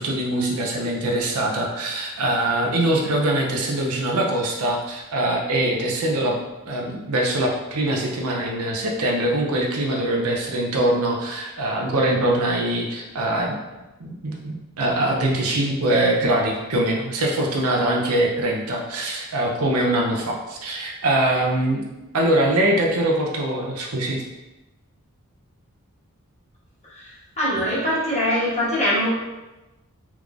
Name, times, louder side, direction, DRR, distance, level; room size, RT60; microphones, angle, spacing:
voice 1, 0.0-6.3 6.6-13.6 14.0-21.8 22.1-24.2, right 1 dB, 75° right, 0 dB, 0.6 m, -23 dB
voice 2, 26.8-29.1, equal, 30° left, -9 dB, 1.5 m, -23 dB
3.5 x 3.1 x 2.5 m, 1.1 s
head